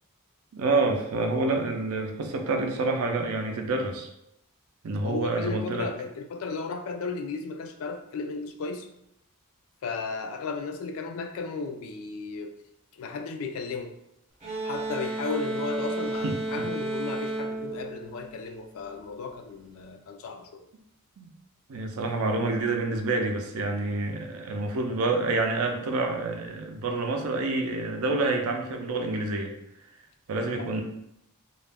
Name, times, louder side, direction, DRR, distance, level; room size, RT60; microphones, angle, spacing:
voice 1, 0.5-4.1 4.8-5.9 16.2-16.7 21.2-21.3 21.7-29.5 30.3-30.8, right 3 dB, 70° right, 4 dB, 0.4 m, -28 dB
voice 2, 5.0-8.9 9.8-12.5 12.9-13.9 14.6-20.6 30.5-30.7, left 4 dB, 65° left, 6 dB, 0.3 m, -35 dB
sound 1, 14.4-18.9, right 2 dB, 30° right, 0.7 m, -33 dB
2.3 x 2.1 x 3.4 m, 0.80 s
head